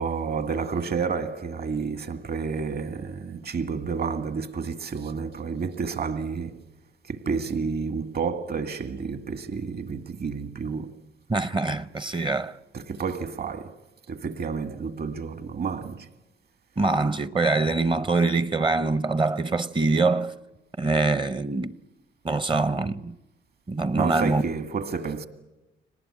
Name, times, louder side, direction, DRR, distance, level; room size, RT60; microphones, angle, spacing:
voice 1, 0.0-6.6 7.0-10.9 12.7-13.8 14.1-16.1 23.9-25.3, right 5 dB, 50° right, 2.0 m, -30 dB
voice 2, 11.3-12.6 16.8-20.3 20.8-21.7 22.2-23.1 23.7-24.4, right 3 dB, 25° right, 0.8 m, -24 dB
24.5 x 19.0 x 9.9 m
cardioid pair, 90°, 20 cm